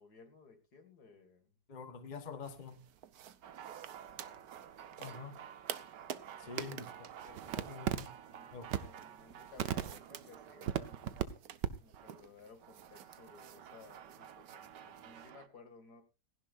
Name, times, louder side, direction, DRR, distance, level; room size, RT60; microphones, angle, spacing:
voice 1, 0.0-1.5 3.9-4.5 6.4-6.9 7.2-7.9 8.3-11.2 11.8-16.0, left 4 dB, 65° left, 2.8 m, -58 dB
voice 2, 1.7-2.8 5.0-5.4 6.4-7.1 7.6-8.1 8.5-8.7, left 5 dB, 30° left, 1.2 m, -46 dB
sound 1, 2.4-15.3, right 9 dB, 65° right, 1.3 m, -51 dB
sound 2, 3.4-11.2 11.6-11.7 11.9-12.2 12.6-15.5, right 10 dB, 90° right, 1.6 m, -43 dB
17.0 x 15.5 x 2.6 m
omnidirectional pair, 1.8 m